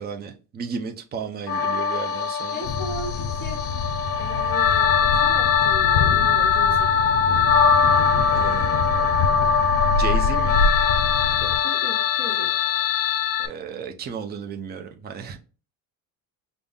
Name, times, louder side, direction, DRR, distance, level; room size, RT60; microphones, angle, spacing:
voice 1, 0.0-2.7 8.3-9.1 9.9-10.7 13.4-15.4, right 6 dB, 25° right, 0.5 m, -34 dB
sound 1, 1.5-13.5, left 6 dB, 40° left, 0.4 m, -21 dB
voice 2, 2.5-3.7 4.2-7.0 11.4-12.5, left 1 dB, 25° left, 1.0 m, -37 dB
Thunder, 2.6-11.6, left 4 dB, 85° left, 0.6 m, -27 dB
5.3 x 2.0 x 3.5 m
cardioid pair, 150°, 39 cm